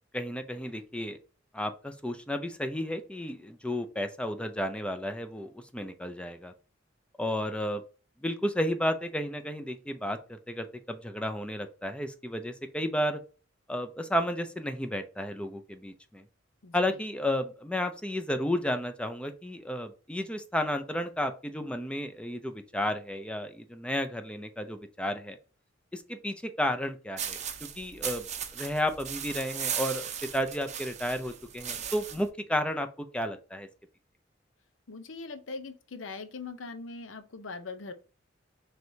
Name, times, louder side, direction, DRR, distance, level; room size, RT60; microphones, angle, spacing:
voice 1, 0.1-1.2 1.5-6.5 7.2-7.8 8.2-13.2 13.7-16.2 16.7-25.4 25.9-27.4 27.8-28.3 28.5-30.1 30.3-33.7, left 1 dB, 5° left, 0.5 m, -32 dB
voice 2, 16.6-17.0 34.9-37.9, left 3 dB, 85° left, 0.7 m, -41 dB
sound 1, 27.2-32.3, right 8 dB, 35° right, 0.6 m, -37 dB
4.6 x 3.3 x 2.7 m
head